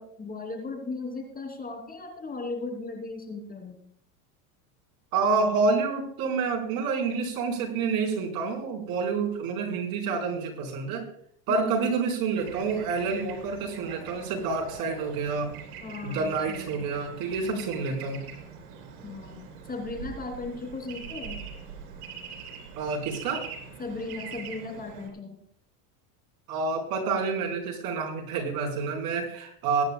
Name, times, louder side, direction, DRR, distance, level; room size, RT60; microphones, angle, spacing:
voice 1, 0.0-3.8 11.5-11.8 15.8-16.8 17.4-17.9 19.0-21.4 23.8-25.4, left 3 dB, 20° left, 3 dB, 3.1 m, -37 dB
voice 2, 5.1-11.1 11.5-15.5 16.0-18.2 22.8-23.4 26.5-29.8, right 4 dB, 50° right, 1 dB, 4.4 m, -28 dB
Bird / Traffic noise roadway noise, 12.4-25.1, right 6 dB, 80° right, 3.4 m, -43 dB
22.5 x 10.5 x 2.3 m, 0.63 s
supercardioid pair, 115°, 45 cm